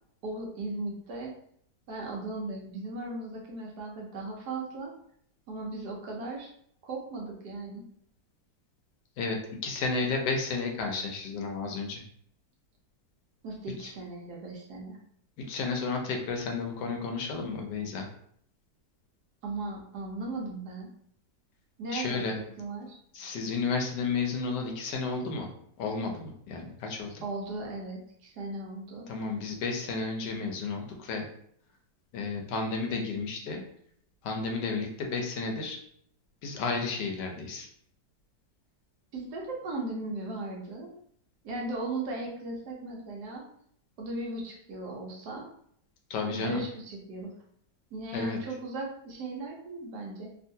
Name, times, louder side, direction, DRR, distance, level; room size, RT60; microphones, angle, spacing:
voice 1, 0.2-1.3 1.9-4.9 5.5-6.5 6.8-7.8 13.4-15.0 19.4-20.9 21.8-22.2 22.6-23.0 27.2-29.1 39.1-40.9 41.4-43.4 44.0-45.5 46.3-47.3 47.9-50.3, right 2 dB, 70° right, -1 dB, 1.3 m, -37 dB
voice 2, 9.2-12.0 15.4-18.1 21.9-22.4 23.1-25.5 25.8-27.2 29.1-31.3 32.1-33.6 34.2-35.8 36.4-37.7 46.1-46.6 48.1-48.4, left 4 dB, 75° left, 3 dB, 1.2 m, -32 dB
3.6 x 2.4 x 2.7 m, 0.66 s
omnidirectional pair, 1.9 m